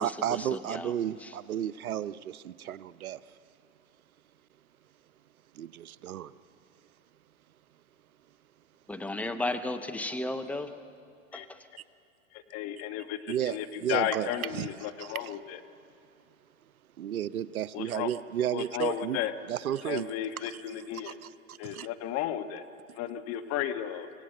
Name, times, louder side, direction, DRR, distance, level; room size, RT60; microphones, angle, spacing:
voice 1, 0.0-3.2 5.5-6.3 13.3-15.4 17.0-19.2 19.5-21.9, right 10 dB, 85° right, 0.7 m, -33 dB
voice 2, 8.9-10.7 11.3-11.4, left 2 dB, 5° left, 0.7 m, -33 dB
voice 3, 12.5-15.6 17.7-18.1 18.5-19.3 19.9-21.1 21.6-22.6 23.0-24.1, left 11 dB, 35° left, 1.3 m, -33 dB
25.0 x 17.0 x 7.7 m
hypercardioid pair, 125°, 42 cm